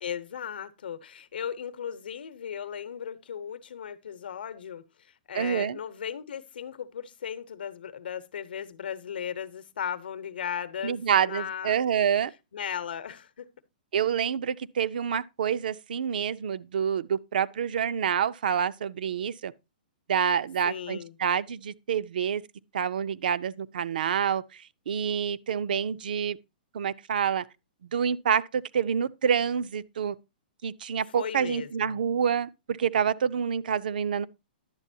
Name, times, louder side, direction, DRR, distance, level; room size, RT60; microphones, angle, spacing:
voice 1, 0.0-4.8 5.3-11.8 12.5-13.5 20.6-21.2 31.1-32.0, left 8 dB, 85° left, 0.8 m, -36 dB
voice 2, 5.3-5.8 10.8-12.3 13.9-19.5 20.1-22.4 22.7-24.4 24.9-26.4 26.7-27.4 27.9-30.2 30.6-34.3, right 8 dB, 65° right, 0.4 m, -27 dB
10.5 x 7.4 x 2.7 m
hypercardioid pair, 175°, 5 cm